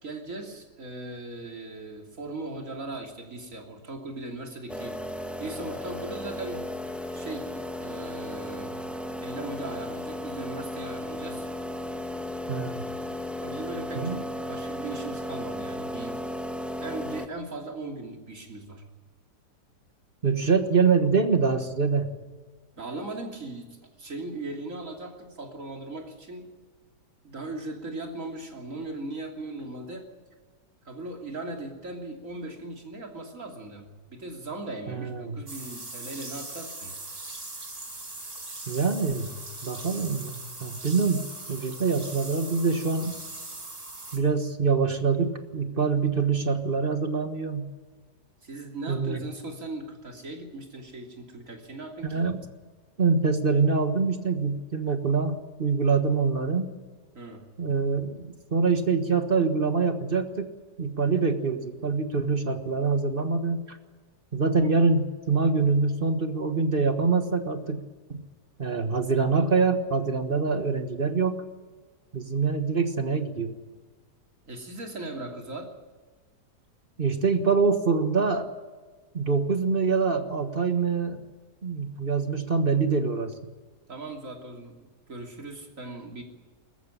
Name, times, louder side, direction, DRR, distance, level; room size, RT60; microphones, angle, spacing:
voice 1, 0.0-5.0 5.4-6.7 7.1-8.7 9.2-11.5 13.4-16.2 16.8-18.8 22.7-26.5 27.2-30.1 30.8-36.9 48.4-52.3 57.1-57.4 74.5-75.7 83.9-86.2, right 2 dB, 50° right, 2 dB, 3.4 m, -38 dB
sound 1, 4.7-17.3, left 1 dB, ahead, 0.8 m, -35 dB
voice 2, 12.5-12.8 14.0-14.2 20.2-22.1 34.9-35.4 38.7-39.3 39.6-43.1 44.1-47.7 48.9-49.2 52.1-52.4 53.0-56.7 57.6-60.5 60.8-63.8 64.3-67.8 68.1-68.2 68.6-71.4 72.1-73.5 77.0-78.5 79.1-81.2 81.6-83.3, right 4 dB, 35° right, 7 dB, 1.5 m, -25 dB
sound 2, 35.5-44.2, right 2 dB, 70° right, 4.9 m, -40 dB
20.5 x 14.5 x 10.0 m, 1.4 s
omnidirectional pair, 1.8 m